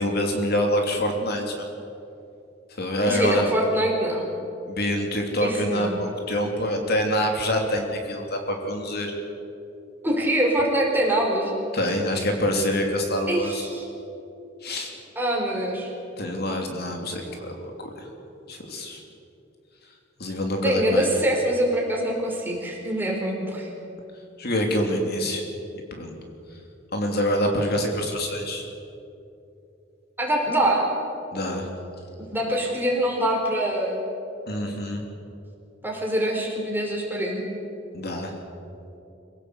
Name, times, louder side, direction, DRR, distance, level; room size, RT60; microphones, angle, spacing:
voice 1, 0.0-1.6 2.8-3.5 4.7-9.1 11.7-13.7 14.6-14.9 16.2-18.1 18.5-19.0 20.2-21.1 24.4-25.5 25.9-26.2 26.9-28.7 31.3-31.7 34.5-35.0 37.9-38.3, equal, 55° left, 2 dB, 2.9 m, -26 dB
voice 2, 3.1-4.3 5.4-6.0 10.0-11.5 13.3-13.8 15.2-15.9 20.6-23.7 30.2-30.9 32.3-34.1 35.8-37.4, right 1 dB, 10° right, -1 dB, 4.7 m, -24 dB
25.5 x 17.5 x 8.1 m, 2.7 s
head